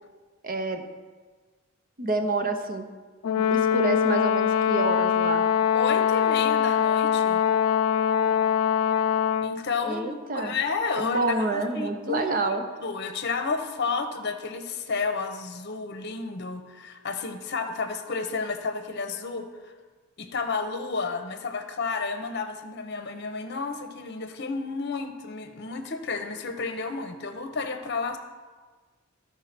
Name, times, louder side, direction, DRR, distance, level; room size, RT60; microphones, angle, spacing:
voice 1, 0.4-0.8 2.0-2.9 3.4-5.4 9.8-10.6 11.0-12.6, right 2 dB, 40° right, 6 dB, 0.8 m, -28 dB
Brass instrument, 3.2-9.6, left 8 dB, 90° left, 0.4 m, -23 dB
voice 2, 5.7-7.4 9.4-12.3 12.8-19.7 20.2-28.2, left 4 dB, 50° left, 8 dB, 0.8 m, -31 dB
13.5 x 4.6 x 5.9 m, 1.4 s
head